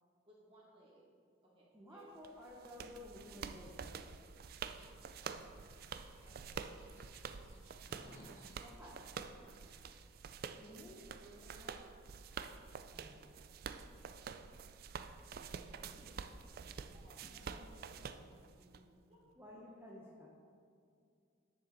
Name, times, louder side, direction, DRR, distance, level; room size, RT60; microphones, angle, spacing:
voice 1, 0.3-1.1 1.4-2.2 6.0-6.8 11.2-12.2 16.9-18.3 19.1-19.2, right 1 dB, 25° right, -5 dB, 2.0 m, -63 dB
voice 2, 1.7-4.1 8.6-9.1 10.6-11.0 12.9-13.3 15.7-16.4 19.4-20.3, left 1 dB, 10° right, -4 dB, 0.9 m, -54 dB
sound 1, 2.2-18.8, right 6 dB, 45° right, 0.3 m, -48 dB
sound 2, 4.8-9.8, left 1 dB, 35° left, 2.3 m, -62 dB
voice 3, 17.2-19.3, right 1 dB, 85° right, 3 dB, 0.8 m, -64 dB
9.8 x 6.8 x 4.0 m, 2.3 s
head